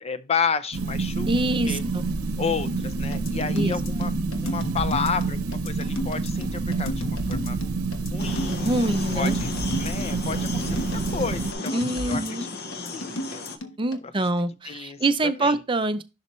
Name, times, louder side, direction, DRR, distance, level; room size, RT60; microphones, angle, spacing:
voice 1, 0.0-1.3 1.7-1.8 2.4-4.1 4.4-7.6 8.1-8.7 9.1-12.5 12.9-13.5 14.0-14.3 14.7-15.6, left 5 dB, 30° left, 0.5 m, -31 dB
sound 1, 0.7-11.5, right 3 dB, 80° right, 0.9 m, -28 dB
voice 2, 1.3-2.0 3.5-3.8 8.6-9.4 11.7-12.4 13.8-16.0, right 2 dB, 25° right, 0.5 m, -25 dB
sound 2, 3.1-14.0, equal, 65° left, 1.2 m, -33 dB
sound 3, 8.2-13.6, left 3 dB, 45° left, 1.0 m, -36 dB
11.0 x 4.1 x 3.1 m
head